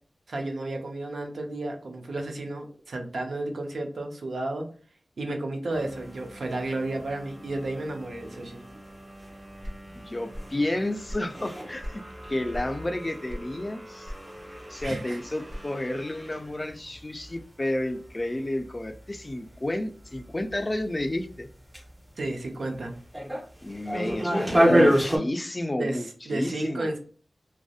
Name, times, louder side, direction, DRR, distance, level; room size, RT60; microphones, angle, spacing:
voice 1, 0.3-4.7 5.2-8.6 14.8-15.2 22.2-22.9 25.8-27.0, right 2 dB, 80° right, 3 dB, 0.5 m, -32 dB
sound 1, 5.7-25.2, equal, 25° right, 0.6 m, -31 dB
sound 2, 9.6-10.6 10.9-12.1 12.5-12.8 13.3-13.7 14.0-15.9, equal, 60° right, 1.3 m, -38 dB
voice 2, 9.9-14.1 14.5-21.5 23.6-26.9, left 1 dB, 30° left, 8 dB, 0.3 m, -31 dB
2.6 x 2.0 x 2.3 m, 0.41 s
cardioid pair, 45°, 0 cm